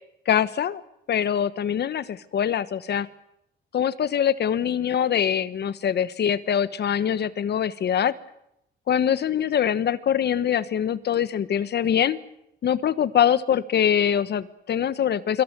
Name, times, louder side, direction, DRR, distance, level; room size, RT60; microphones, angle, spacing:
voice 1, 0.3-0.8 1.1-3.1 3.7-8.1 8.9-12.2 12.6-15.4, left 9 dB, 60° left, 15 dB, 1.2 m, -23 dB
25.5 x 23.5 x 6.8 m, 0.81 s
cardioid pair, 90°, 20 cm